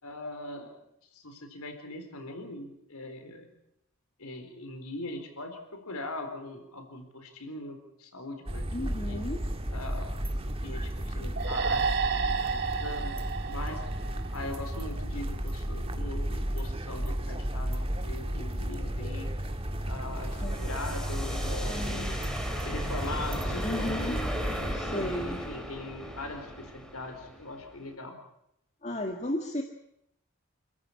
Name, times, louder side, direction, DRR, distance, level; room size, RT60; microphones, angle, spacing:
voice 1, 0.0-0.8 1.1-3.5 4.2-9.3 9.7-10.1 10.4-13.8 14.3-19.3 19.9-22.1 22.6-24.3 24.9-28.2, left 2 dB, 90° left, 5 dB, 4.2 m, -41 dB
sound 1, 8.5-24.7, right 1 dB, 25° right, 1.9 m, -33 dB
voice 2, 8.7-9.4 20.4-20.6 21.6-22.2 23.6-24.2 24.7-25.4 28.8-29.6, left 1 dB, 30° left, 4 dB, 1.8 m, -34 dB
sound 2, 11.4-14.8, right 5 dB, 50° right, 1.6 m, -31 dB
sound 3, 19.3-27.9, equal, 5° left, 3.1 m, -37 dB
28.5 x 14.5 x 9.8 m, 0.79 s
head